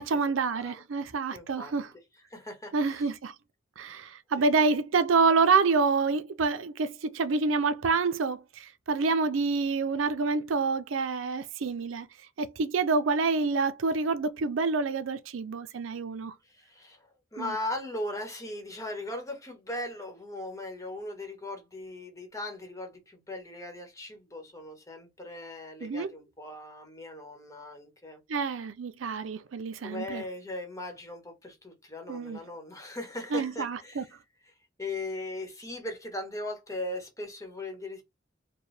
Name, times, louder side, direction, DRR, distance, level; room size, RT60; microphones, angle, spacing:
voice 1, 0.0-1.9 2.7-3.3 3.8-12.1 12.4-16.3 17.4-17.5 25.8-26.1 28.3-30.2 32.1-32.4 33.3-34.0, right 4 dB, 80° right, 0.5 m, -27 dB
voice 2, 0.5-0.8 1.3-1.7 2.3-3.1 4.4-4.8 16.4-28.2 29.8-34.2 34.5-34.6 34.8-38.0, left 1 dB, 15° left, 1.1 m, -39 dB
4.4 x 2.2 x 3.2 m
head